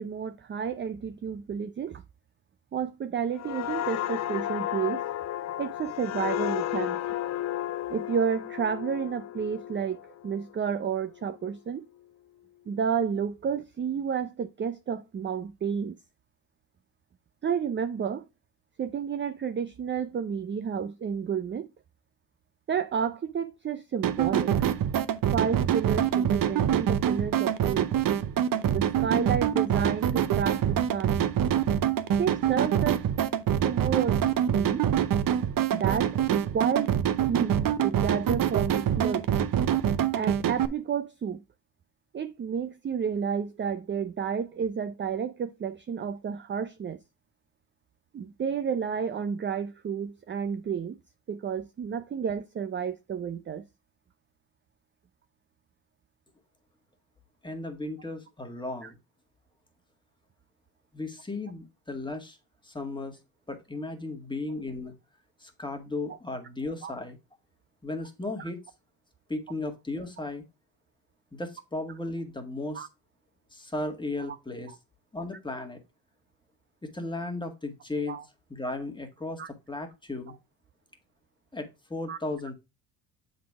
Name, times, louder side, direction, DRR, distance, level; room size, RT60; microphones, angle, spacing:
voice 1, 0.0-2.0 2.7-5.0 5.6-7.0 7.9-11.9 12.7-16.0 17.4-18.2 18.8-21.7 22.7-24.5 25.3-27.9 28.7-31.2 32.2-33.0 33.6-34.2 34.5-34.9 35.7-36.9 37.2-39.3 40.1-41.4 42.1-47.0 48.1-51.0 51.3-53.6 58.8-58.9 66.1-66.2 66.8-66.9 68.4-68.5 72.7-72.9 74.7-74.8 78.1-78.2 79.4-79.5 82.1-82.2, right 7 dB, 25° right, 0.5 m, -31 dB
sound 1, 3.4-10.8 11.2-11.5, left 13 dB, 40° left, 0.4 m, -33 dB
sound 2, 24.0-40.7, right 9 dB, 45° right, 0.8 m, -25 dB
voice 2, 57.4-59.0 60.9-62.4 62.6-63.2 63.5-64.9 65.4-67.2 67.8-68.6 69.3-70.4 71.3-72.9 73.5-74.7 75.1-75.8 76.8-78.2 78.5-79.4 79.7-80.3 81.5-82.5, left 2 dB, 10° left, 1.8 m, -35 dB
7.3 x 4.1 x 4.8 m
supercardioid pair, 85°, 48 cm